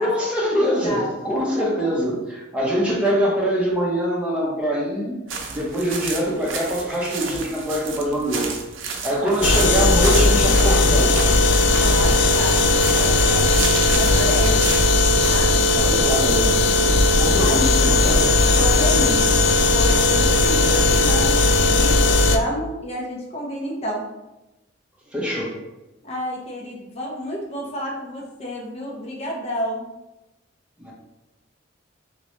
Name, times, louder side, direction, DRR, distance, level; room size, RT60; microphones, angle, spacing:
voice 1, 0.0-5.2 5.5-8.5 9.0-11.2 12.0-12.2 15.8-16.5 17.2-18.3 25.1-25.6 30.8-30.9, equal, 5° right, -4 dB, 0.7 m, -23 dB
voice 2, 0.6-1.1 11.6-12.6 13.0-13.5 13.9-14.6 15.3-16.2 16.8-17.6 18.6-19.2 19.7-24.1 26.0-29.9, equal, 30° left, -2 dB, 0.7 m, -30 dB
sound 1, 5.3-15.5, right 4 dB, 80° right, 0.5 m, -31 dB
sound 2, 9.4-22.4, left 2 dB, 65° left, 0.3 m, -17 dB
3.0 x 2.9 x 3.1 m, 0.97 s
head